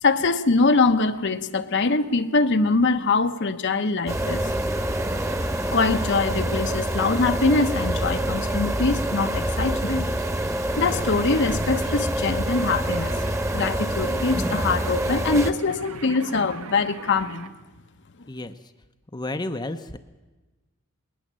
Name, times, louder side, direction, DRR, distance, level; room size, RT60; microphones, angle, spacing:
voice 1, 0.0-4.5 5.7-10.1 10.8-13.2 13.5-17.5, left 3 dB, 55° left, 8 dB, 1.0 m, -23 dB
sound 1, 4.1-15.5, right 1 dB, 15° right, 1.2 m, -26 dB
sound 2, 10.7-17.6, right 5 dB, 80° right, 1.2 m, -44 dB
voice 2, 19.1-20.0, left 2 dB, 20° left, 7 dB, 0.7 m, -31 dB
20.5 x 19.0 x 7.5 m, 1.2 s
head